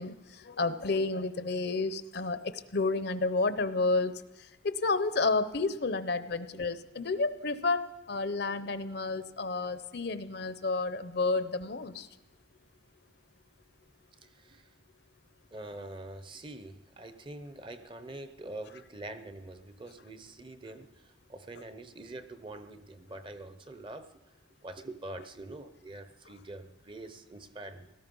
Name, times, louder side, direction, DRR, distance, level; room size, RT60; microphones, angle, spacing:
voice 1, 0.0-12.1, left 3 dB, 55° left, 12 dB, 0.7 m, -31 dB
voice 2, 14.2-14.7 15.5-24.1 24.6-27.9, right 2 dB, 25° right, 10 dB, 0.7 m, -45 dB
17.5 x 13.0 x 5.4 m, 1.0 s
head